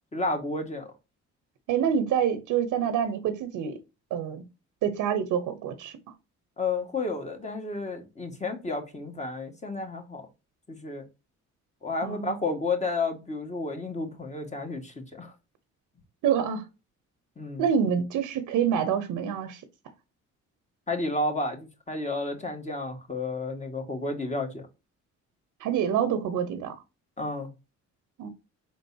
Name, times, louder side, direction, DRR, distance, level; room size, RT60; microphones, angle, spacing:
voice 1, 0.1-0.9 6.6-10.3 10.7-11.0 11.8-15.3 17.4-17.7 20.9-24.6 27.2-27.5, left 2 dB, 25° left, 1.6 m, -31 dB
voice 2, 1.7-3.8 4.1-4.4 4.8-6.0 12.0-12.4 16.2-16.6 17.6-19.6 25.6-26.8 28.2-28.3, right 8 dB, 90° right, 0.9 m, -26 dB
4.9 x 3.8 x 2.7 m
cardioid pair, 90°, 30 cm